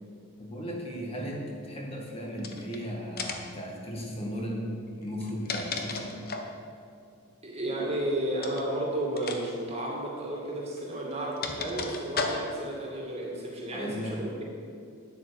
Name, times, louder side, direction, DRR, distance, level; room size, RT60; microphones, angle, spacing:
voice 1, 0.4-4.7 5.0-6.2 13.7-14.2, equal, 25° left, -2 dB, 1.8 m, -36 dB
sound 1, 2.4-2.8 3.2-3.6 5.1-6.6 8.4-8.7 9.2-9.4 9.7-9.8 10.8-12.7, left 4 dB, 45° left, 1.0 m, -34 dB
voice 2, 7.4-14.4, right 1 dB, 30° right, -2 dB, 2.3 m, -32 dB
9.8 x 8.7 x 7.0 m, 2.5 s
head